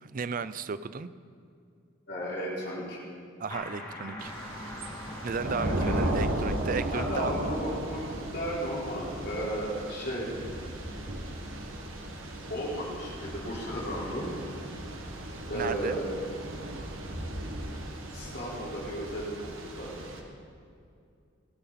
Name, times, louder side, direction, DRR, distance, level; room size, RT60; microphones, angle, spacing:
voice 1, 0.0-1.1 3.4-4.3 5.2-7.3 15.5-16.0, right 5 dB, 40° right, 14 dB, 0.4 m, -34 dB
voice 2, 2.1-3.0 5.5-6.0 6.9-10.3 12.5-14.3 15.5-16.0 18.1-20.0, equal, 50° left, -6 dB, 4.4 m, -34 dB
sound 1, 3.5-8.9, left 1 dB, 20° left, 2.1 m, -44 dB
Thunder / Rain, 4.2-20.2, right 1 dB, 80° right, 1.8 m, -35 dB
19.5 x 12.5 x 4.2 m, 2.4 s
head